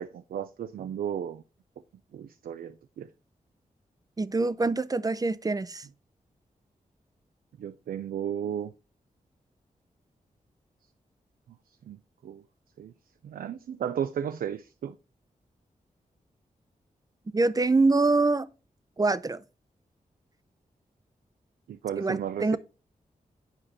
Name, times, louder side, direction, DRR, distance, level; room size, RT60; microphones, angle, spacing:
voice 1, 0.0-1.4 2.1-3.1 7.6-8.7 11.9-12.0 12.2-12.4 12.8-12.9 13.2-15.0 21.7-22.6, right 9 dB, 80° right, 0.4 m, -34 dB
voice 2, 4.2-5.8 17.3-18.5 19.0-19.4 22.0-22.6, right 3 dB, 25° right, 0.6 m, -25 dB
9.0 x 4.9 x 4.2 m
cardioid pair, 55°, 15 cm